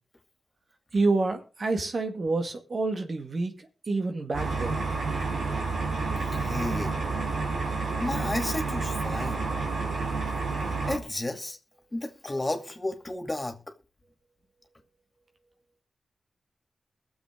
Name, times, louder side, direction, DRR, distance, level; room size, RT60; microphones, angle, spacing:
voice 1, 0.9-3.5 3.9-4.8, right 3 dB, 60° right, 1.8 m, -28 dB
sound 1, 4.3-11.0, right 3 dB, 85° right, 3.0 m, -29 dB
voice 2, 6.2-7.0 8.0-9.5 10.9-11.6 11.9-13.7, left 2 dB, 30° left, 2.4 m, -32 dB
21.5 x 7.3 x 3.8 m
cardioid pair, 40°, 0 cm